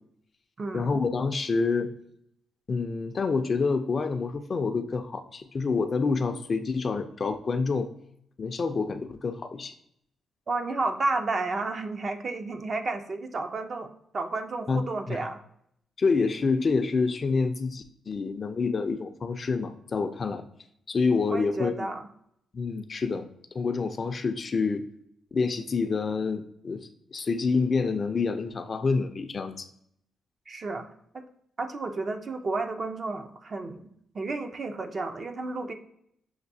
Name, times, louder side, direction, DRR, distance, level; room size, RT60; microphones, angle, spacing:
voice 1, 0.7-1.9 2.7-7.9 8.4-9.7 14.7-15.2 16.0-20.4 20.9-21.9 22.5-23.2 23.5-24.9 25.3-29.7, left 4 dB, 35° left, 8 dB, 0.4 m, -27 dB
voice 2, 10.5-15.4 21.3-22.0 30.5-30.9 31.1-31.2 31.6-33.9 34.1-35.7, right 3 dB, 40° right, 6 dB, 0.5 m, -31 dB
6.5 x 2.6 x 2.6 m, 0.71 s
cardioid pair, 115°, 0 cm